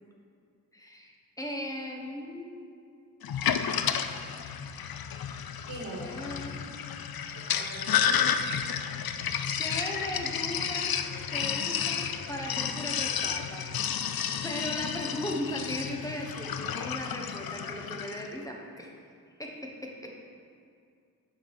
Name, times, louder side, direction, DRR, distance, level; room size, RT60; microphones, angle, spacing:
voice 1, 0.7-2.7 6.1-6.6 9.6-10.9 11.3-13.6 14.4-18.9 19.4-20.1, left 1 dB, 10° left, -1 dB, 1.2 m, -37 dB
Sink (filling or washing), 3.2-18.3, left 8 dB, 80° left, 0.5 m, -31 dB
voice 2, 5.7-6.1 7.3-8.2, right 1 dB, 90° right, -5 dB, 1.3 m, -41 dB
9.4 x 3.8 x 6.3 m, 2.3 s
wide cardioid pair, 90°, 35 cm